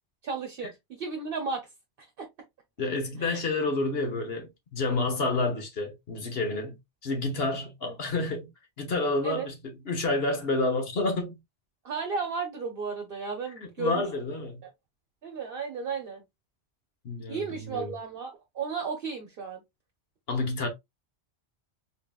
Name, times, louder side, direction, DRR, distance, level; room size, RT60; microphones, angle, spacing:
voice 1, 0.2-1.7 2.2-2.3 3.2-3.4 7.8-7.9 9.2-9.5 11.8-14.0 15.2-16.2 17.3-19.6, right 5 dB, 60° right, 0.9 m, -34 dB
voice 2, 2.8-6.8 7.0-8.5 8.8-11.4 13.8-14.6 17.0-17.9 20.3-20.7, left 2 dB, 60° left, 1.3 m, -29 dB
3.8 x 3.8 x 2.3 m
omnidirectional pair, 1.1 m